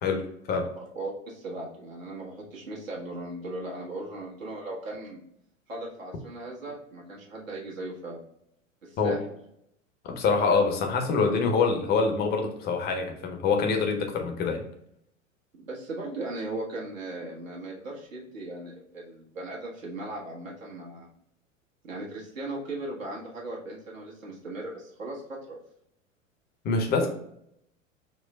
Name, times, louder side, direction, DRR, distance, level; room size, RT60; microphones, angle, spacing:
voice 1, 0.0-0.7 9.0-9.2 10.0-14.6 26.6-27.1, left 4 dB, 25° left, 4 dB, 0.7 m, -25 dB
voice 2, 0.7-5.2 5.7-8.2 8.8-9.2 11.3-11.4 15.6-21.1 21.8-25.6 26.9-27.1, right 2 dB, 75° right, -4 dB, 1.4 m, -38 dB
4.5 x 2.2 x 3.2 m, 0.73 s
figure-of-eight pair, 90°, 40 cm